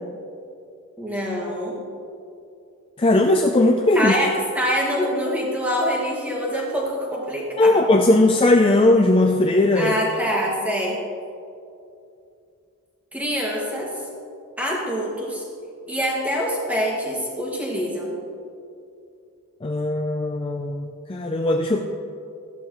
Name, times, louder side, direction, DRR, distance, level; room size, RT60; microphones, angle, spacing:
voice 1, 1.0-1.8 4.0-7.7 9.8-11.0 13.1-13.9 14.6-15.4 15.9-18.1, equal, 5° right, -4 dB, 2.0 m, -25 dB
voice 2, 3.0-4.1 7.6-9.9 19.6-21.8, left 2 dB, 25° left, 3 dB, 0.4 m, -18 dB
14.0 x 12.0 x 3.1 m, 2.5 s
head